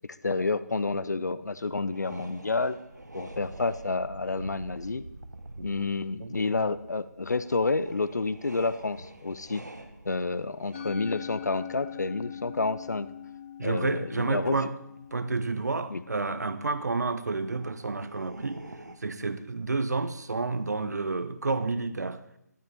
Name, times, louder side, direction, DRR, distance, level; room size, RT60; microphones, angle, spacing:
voice 1, 0.0-2.8 3.1-5.0 5.6-9.6 10.0-13.1 13.6-14.6 15.9-16.0, left 3 dB, 75° left, 0.7 m, -29 dB
sound 1, 1.9-15.5 16.1-16.5 17.1-19.0, right 1 dB, 90° right, 1.4 m, -47 dB
voice 2, 6.2-6.6 13.6-14.8 15.1-18.6 19.0-22.2, right 3 dB, 70° right, 1.0 m, -30 dB
Musical instrument, 10.7-17.1, left 10 dB, 40° left, 1.9 m, -43 dB
12.5 x 12.0 x 4.2 m
figure-of-eight pair, 150°, 9 cm